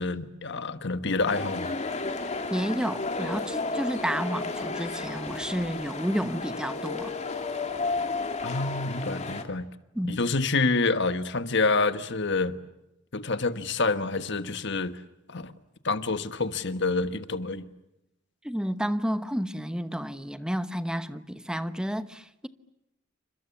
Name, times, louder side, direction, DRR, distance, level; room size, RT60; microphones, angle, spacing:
voice 1, 0.0-1.7 8.4-9.7 10.0-12.6 13.1-15.0 15.3-15.5 15.8-17.6, left 3 dB, 60° left, 1.4 m, -27 dB
sound 1, 1.3-9.4, left 3 dB, 35° left, 2.3 m, -32 dB
voice 2, 2.5-7.1 9.9-10.2 18.4-22.5, equal, 5° right, 1.0 m, -31 dB
29.5 x 26.0 x 7.2 m
head